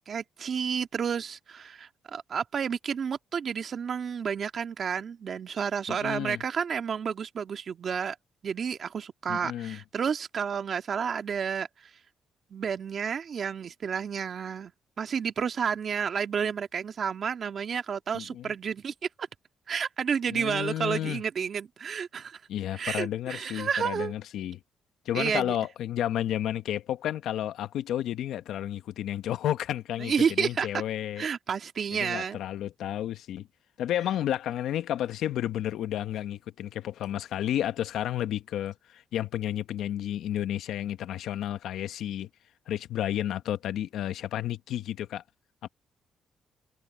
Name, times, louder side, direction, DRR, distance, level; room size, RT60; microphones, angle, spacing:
voice 1, 0.1-8.2 8.4-11.7 12.5-14.7 15.0-19.3 19.7-22.4 22.7-24.1 25.1-25.6 30.0-30.8 31.2-32.4, right 7 dB, 50° right, 1.8 m, -31 dB
voice 2, 5.9-6.4 9.3-9.8 18.1-18.5 20.3-21.2 22.5-24.6 25.0-31.3 31.9-33.5 33.8-42.3 42.7-45.2 45.6-45.7, left 11 dB, 80° left, 1.1 m, -31 dB
cardioid pair, 90°, 0 cm